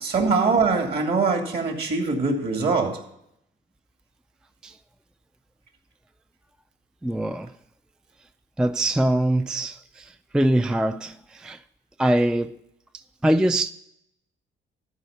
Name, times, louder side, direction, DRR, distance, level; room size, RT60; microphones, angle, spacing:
voice 1, 0.0-3.0, right 4 dB, 55° right, 2.5 m, -23 dB
voice 2, 7.0-7.5 8.6-11.6 12.0-12.6 12.9-13.7, right 1 dB, 5° right, 0.3 m, -23 dB
12.5 x 5.0 x 6.6 m
cardioid pair, 90°, 20 cm